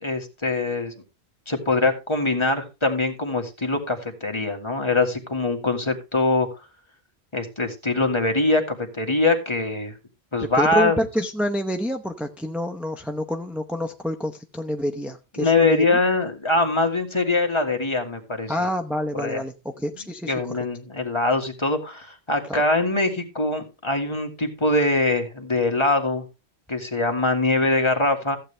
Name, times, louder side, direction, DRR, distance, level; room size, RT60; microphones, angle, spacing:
voice 1, 0.0-0.9 1.5-6.5 7.3-9.9 10.3-11.0 15.4-18.5 19.1-19.4 20.3-26.2 26.7-28.4, left 2 dB, 25° left, 4 dB, 1.8 m, -23 dB
voice 2, 10.6-16.0 18.5-20.3 22.5-22.6, equal, ahead, 3 dB, 0.7 m, -27 dB
14.5 x 8.5 x 3.3 m, 0.28 s
omnidirectional pair, 1.1 m